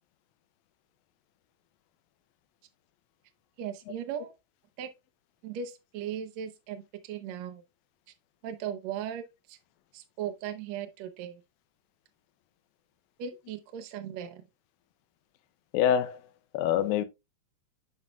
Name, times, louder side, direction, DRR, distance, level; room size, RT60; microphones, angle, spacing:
voice 1, 3.6-4.3 4.8-4.9 5.4-7.6 8.4-9.6 9.9-11.4 13.2-14.5, right 9 dB, 75° right, 1.6 m, -37 dB
voice 2, 15.7-16.2 16.5-17.0, left 10 dB, 85° left, 2.5 m, -25 dB
9.5 x 5.5 x 2.3 m
omnidirectional pair, 4.0 m